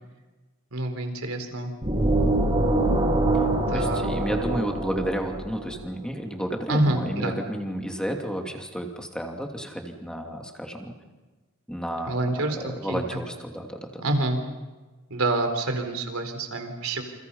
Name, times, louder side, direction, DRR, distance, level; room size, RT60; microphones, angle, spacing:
voice 1, 0.7-1.7 3.7-4.1 6.7-7.4 12.1-13.0 14.0-14.4 15.1-17.0, right 2 dB, 70° right, 6 dB, 4.1 m, -27 dB
sound 1, 1.8-5.6, right 2 dB, 25° right, 4.4 m, -24 dB
voice 2, 3.7-10.9 11.7-12.3 12.6-14.0, equal, 5° left, 2 dB, 2.8 m, -32 dB
29.0 x 28.0 x 5.6 m, 1.2 s
head